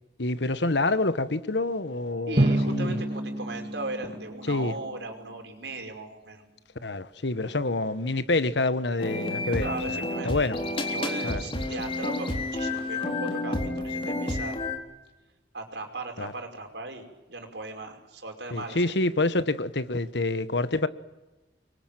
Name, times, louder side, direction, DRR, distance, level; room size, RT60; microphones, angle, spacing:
voice 1, 0.2-3.0 4.5-4.7 6.8-10.6 11.2-11.4 14.0-14.1 16.2-16.3 18.5-20.9, left 2 dB, 80° left, 1.3 m, -27 dB
voice 2, 2.3-6.4 9.6-10.4 10.9-14.6 15.5-18.8, right 2 dB, 80° right, 5.3 m, -37 dB
Drum, 2.4-5.1, right 1 dB, 35° right, 3.0 m, -28 dB
sound 1, 9.0-14.8, left 2 dB, 30° left, 3.6 m, -30 dB
25.5 x 23.0 x 9.1 m
head